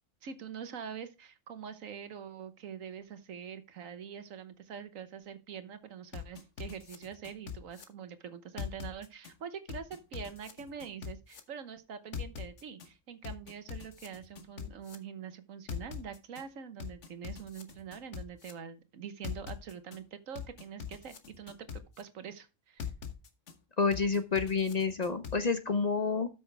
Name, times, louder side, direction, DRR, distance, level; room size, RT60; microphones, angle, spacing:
voice 1, 0.2-22.9, right 7 dB, 85° right, 11 dB, 1.4 m, -44 dB
sound 1, 6.1-7.8 8.6-9.3 9.7-11.4 12.1-12.9 13.2-15.0 15.7-16.4 16.8-18.5 19.2-20.0 20.4-22.0 22.8-23.5 23.9-25.4, left 7 dB, 65° left, 1.4 m, -42 dB
voice 2, 23.8-26.3, left 5 dB, 40° left, 10 dB, 0.7 m, -29 dB
13.0 x 6.2 x 3.3 m, 0.30 s
omnidirectional pair, 1.3 m